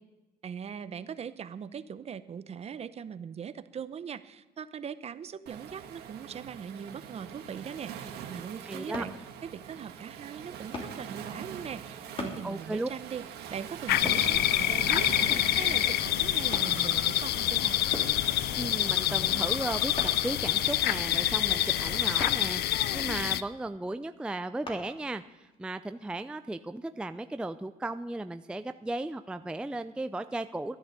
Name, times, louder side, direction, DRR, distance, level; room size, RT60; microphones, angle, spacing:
voice 1, 0.4-9.1 9.4-13.2 13.5-17.8, right 7 dB, 40° right, 13 dB, 0.7 m, -41 dB
Waves surf, 5.5-22.2, right 8 dB, 75° right, 1.5 m, -44 dB
voice 2, 8.7-9.0 12.4-12.9 18.5-30.8, right 2 dB, 5° right, 10 dB, 0.4 m, -36 dB
sound 1, 8.9-9.2 10.7-11.0 12.2-12.4 14.0-14.3 15.3-15.6 16.5-16.8 17.9-18.2 20.0-20.3 22.2-22.4 24.7-24.8 25.4-25.5, left 2 dB, 30° left, 3.0 m, -37 dB
sound 2, 13.9-23.4, left 13 dB, 70° left, 0.6 m, -27 dB
13.0 x 10.5 x 6.7 m, 1.1 s
cardioid pair, 110°, 17 cm